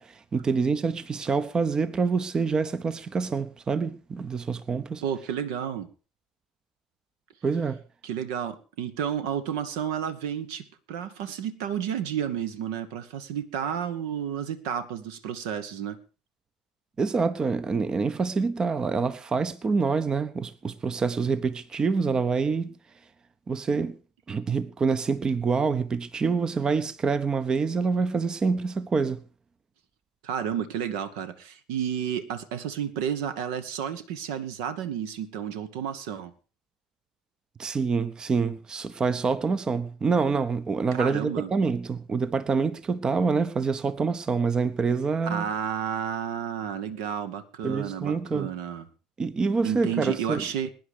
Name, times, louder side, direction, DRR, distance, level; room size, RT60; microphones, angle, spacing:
voice 1, 0.0-5.0 7.4-7.8 17.0-22.7 23.5-24.0 24.3-29.2 37.6-45.5 47.6-48.5 49.2-50.4, right 5 dB, 25° right, 0.8 m, -26 dB
voice 2, 5.0-5.9 8.0-16.0 30.2-36.3 40.9-41.5 45.3-48.9 49.6-50.7, right 8 dB, 60° right, 1.0 m, -31 dB
22.0 x 10.5 x 3.4 m
figure-of-eight pair, 60°, 3 cm